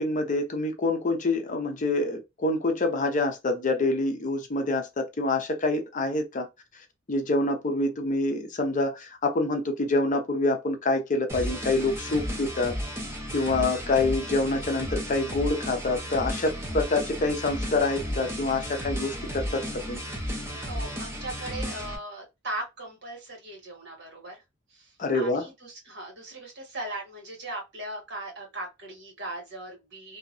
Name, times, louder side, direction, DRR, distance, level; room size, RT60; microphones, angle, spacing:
voice 1, 0.0-6.5 7.1-12.8 13.3-19.6 19.9-20.0 25.0-25.4, left 2 dB, 40° left, 0.6 m, -26 dB
sound 1, 11.3-22.0, equal, 15° right, 0.7 m, -34 dB
voice 2, 20.5-24.4 24.7-30.2, right 1 dB, 60° right, 1.4 m, -38 dB
2.7 x 2.2 x 2.5 m
head